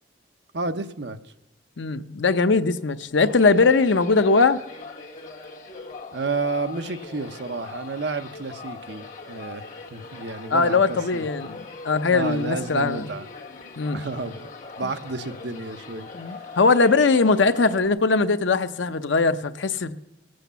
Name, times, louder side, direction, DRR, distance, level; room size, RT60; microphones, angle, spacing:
voice 1, 0.5-1.2 6.1-9.6 9.9-11.2 12.1-13.3 13.9-14.5 14.8-16.1, right 3 dB, 65° right, 0.8 m, -31 dB
voice 2, 1.8-4.6 10.5-13.1 13.8-14.0 14.8-14.9 16.1-19.9, left 4 dB, 80° left, 0.7 m, -20 dB
sound 1, 3.2-17.9, left 4 dB, 40° left, 1.9 m, -41 dB
22.0 x 7.9 x 6.9 m
head